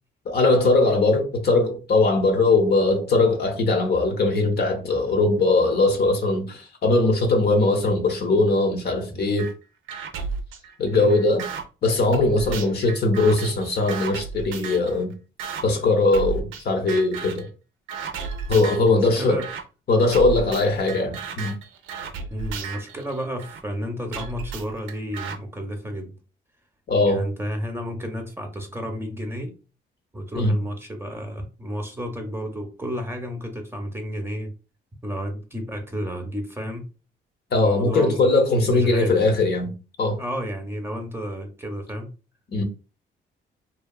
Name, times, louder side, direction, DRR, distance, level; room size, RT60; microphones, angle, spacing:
voice 1, 0.3-9.5 10.8-11.5 11.8-15.1 15.6-17.4 18.5-19.4 19.9-21.5 26.9-27.3 30.4-30.5 37.5-40.2 42.5-42.6, left 2 dB, 55° left, 0.7 m, -20 dB
sound 1, 9.4-9.5 9.9-11.6 12.1-14.9 15.4-15.6 16.1-16.6 16.9-17.5 17.9-18.9 19.4-19.6 20.1-23.6 24.1-25.4, right 5 dB, 85° right, 0.5 m, -33 dB
voice 2, 18.9-19.5 22.3-26.1 27.0-29.5 30.1-34.5 35.0-36.9 37.6-38.3 38.7-39.3 40.2-42.1, equal, 10° right, 0.6 m, -31 dB
2.8 x 2.3 x 2.2 m
cardioid pair, 90°, 20 cm